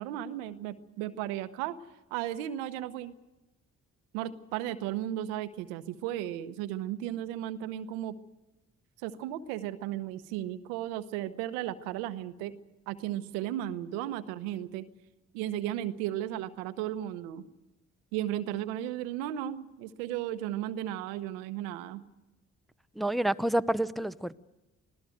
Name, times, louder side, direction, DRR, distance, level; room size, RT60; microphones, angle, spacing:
voice 1, 0.0-1.7 2.1-3.1 4.1-8.2 9.0-12.5 12.9-14.9 15.3-17.4 18.1-22.0, right 12 dB, 85° right, 12 dB, 1.0 m, -35 dB
voice 2, 23.0-24.3, right 1 dB, ahead, 13 dB, 0.9 m, -28 dB
25.0 x 16.5 x 7.8 m, 1.0 s
hypercardioid pair, 45°, 36 cm